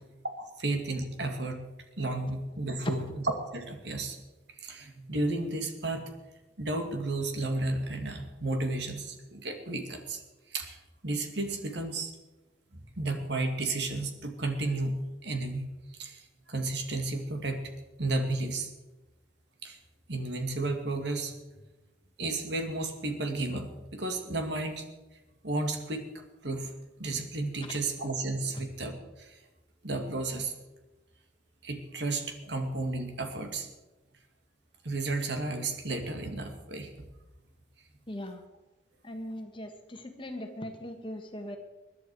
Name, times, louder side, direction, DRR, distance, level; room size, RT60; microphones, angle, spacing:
voice 1, 0.2-1.7 2.0-4.2 4.6-6.0 6.6-10.2 10.5-10.8 11.0-12.1 12.7-17.7 18.0-18.7 19.6-19.8 20.1-21.3 22.2-24.8 25.4-26.7 27.0-29.4 29.8-30.5 31.6-33.7 34.8-36.9, right 2 dB, 60° right, 5 dB, 2.3 m, -33 dB
voice 2, 38.1-38.4 39.0-41.6, left 1 dB, 25° left, 5 dB, 1.6 m, -38 dB
21.5 x 11.5 x 4.8 m, 1.1 s
head